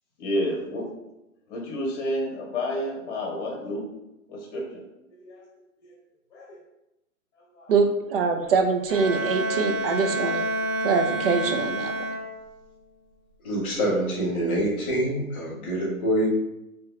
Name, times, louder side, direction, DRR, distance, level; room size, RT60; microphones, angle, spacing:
voice 1, 0.2-0.9 1.5-3.8 4.3-4.8 5.2-5.4 6.3-6.6 7.5-7.7, equal, 30° left, -2 dB, 1.0 m, -30 dB
voice 2, 7.7-10.5 10.8-11.9, right 4 dB, 40° right, 5 dB, 0.5 m, -24 dB
Bowed string instrument, 8.9-12.7, right 1 dB, 70° right, 1.5 m, -29 dB
voice 3, 13.4-16.3, right 1 dB, 10° left, -12 dB, 0.4 m, -25 dB
3.5 x 2.9 x 3.1 m, 0.92 s
hypercardioid pair, 135°, 45 cm